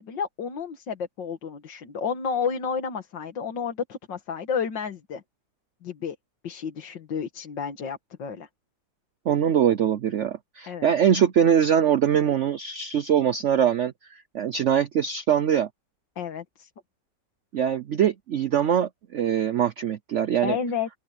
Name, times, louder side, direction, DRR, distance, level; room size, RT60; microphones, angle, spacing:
voice 1, 0.0-5.2 5.8-6.2 6.4-8.5 10.7-10.9 16.2-16.7 20.4-20.9, left 6 dB, 90° left, 2.3 m, -31 dB
voice 2, 9.3-15.7 17.5-20.6, right 9 dB, 65° right, 0.7 m, -23 dB
open air
omnidirectional pair, 1.9 m